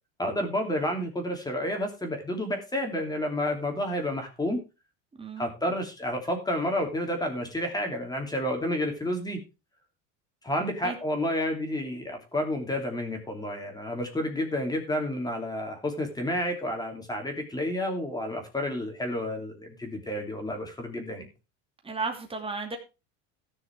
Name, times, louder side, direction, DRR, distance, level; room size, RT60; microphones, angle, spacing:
voice 1, 0.2-4.6 5.4-9.4 10.4-21.3, left 1 dB, 10° left, 3 dB, 2.9 m, -30 dB
voice 2, 5.1-5.5 10.8-11.0 21.8-22.8, right 4 dB, 15° right, 3 dB, 2.6 m, -34 dB
14.5 x 6.5 x 4.6 m, 0.29 s
cardioid pair, 130°, 35 cm